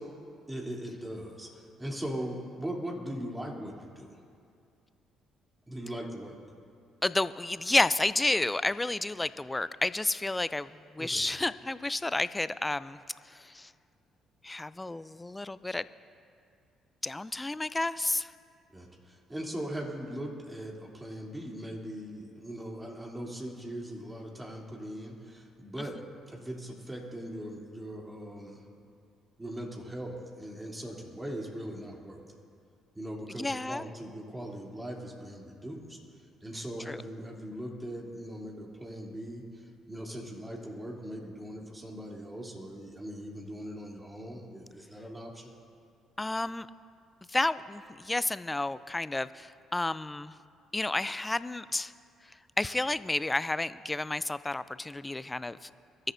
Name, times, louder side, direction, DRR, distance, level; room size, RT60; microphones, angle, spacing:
voice 1, 0.5-4.2 5.7-6.4 11.0-11.3 18.7-26.0 26.3-28.6 29.4-32.4 32.9-36.0 36.4-45.5, right 1 dB, 15° right, -2 dB, 3.2 m, -40 dB
voice 2, 7.0-13.0 13.3-13.7 14.4-15.9 17.0-18.3 33.3-33.8 36.9-37.0 46.2-46.7 47.3-50.3 50.7-51.9 52.3-55.7, left 2 dB, 15° left, 16 dB, 0.5 m, -31 dB
23.5 x 13.0 x 2.7 m, 2.4 s
hypercardioid pair, 50°, 0 cm